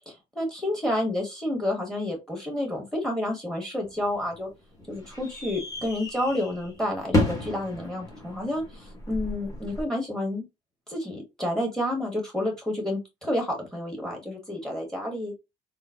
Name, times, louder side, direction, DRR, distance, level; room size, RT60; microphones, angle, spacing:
voice 1, 0.1-4.5 4.9-10.4 10.9-15.3, left 1 dB, 5° left, 2 dB, 1.2 m, -30 dB
sound 1, 3.8-9.8, left 1 dB, 20° left, 1.3 m, -32 dB
3.6 x 2.1 x 2.5 m, 0.23 s
cardioid pair, 110°, 17 cm